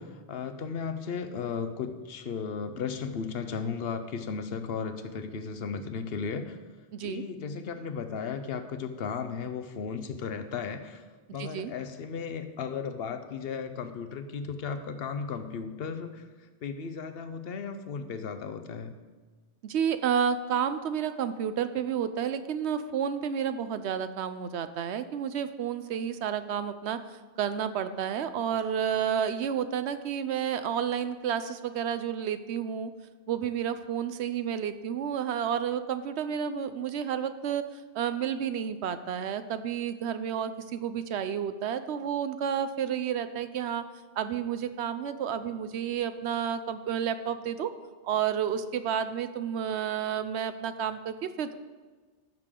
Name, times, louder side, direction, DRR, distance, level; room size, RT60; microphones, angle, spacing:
voice 1, 0.0-6.6 7.0-11.0 11.3-16.3 16.6-18.9, left 5 dB, 60° left, 9 dB, 0.9 m, -35 dB
voice 2, 6.9-7.2 11.4-11.7 19.6-32.9 33.3-37.6 37.9-43.8 44.2-47.7 48.0-51.5, right 8 dB, 75° right, 11 dB, 0.8 m, -31 dB
15.0 x 6.6 x 3.7 m, 1.4 s
omnidirectional pair, 1.2 m